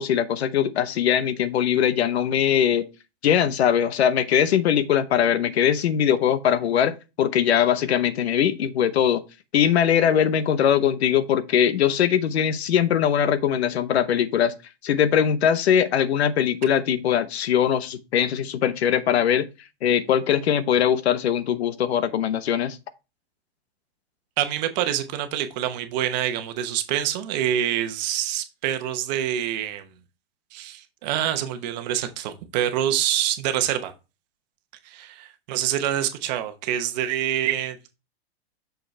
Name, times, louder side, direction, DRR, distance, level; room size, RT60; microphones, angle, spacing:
voice 1, 0.0-2.8 3.2-9.2 9.5-14.5 14.8-19.5 19.8-22.8, left 9 dB, 90° left, 0.8 m, -21 dB
voice 2, 24.4-29.9 30.5-33.9 34.8-37.9, right 11 dB, 45° right, 1.0 m, -26 dB
6.4 x 5.1 x 3.2 m
supercardioid pair, 150°, 31 cm